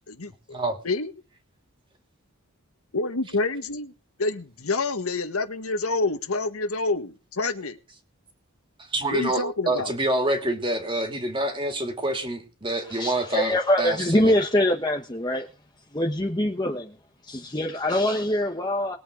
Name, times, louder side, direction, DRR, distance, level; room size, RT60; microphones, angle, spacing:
voice 1, 0.1-1.1 2.9-3.9 4.2-7.8 9.1-9.9, left 3 dB, 85° left, 8 dB, 1.7 m, -28 dB
voice 2, 8.9-14.0, right 1 dB, 25° right, 5 dB, 2.7 m, -26 dB
voice 3, 12.8-15.5 15.9-17.0 17.2-19.0, left 1 dB, 20° left, 3 dB, 1.1 m, -24 dB
21.0 x 8.1 x 3.9 m, 0.32 s
head